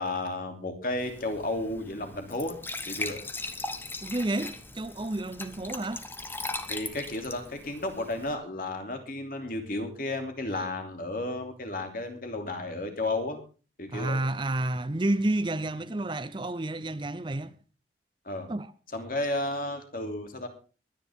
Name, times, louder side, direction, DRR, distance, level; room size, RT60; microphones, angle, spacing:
voice 1, 0.0-2.6 2.9-3.2 6.7-13.4 13.8-14.2 18.2-18.5 18.9-20.5, left 2 dB, 50° left, 3.0 m, -33 dB
Glass / Trickle dribble / Fill (with liquid), 1.0-8.3, left 2 dB, 10° left, 1.1 m, -39 dB
voice 2, 4.0-6.0 13.9-17.5 18.5-18.7, right 2 dB, 25° right, 0.6 m, -30 dB
23.0 x 10.0 x 3.7 m
head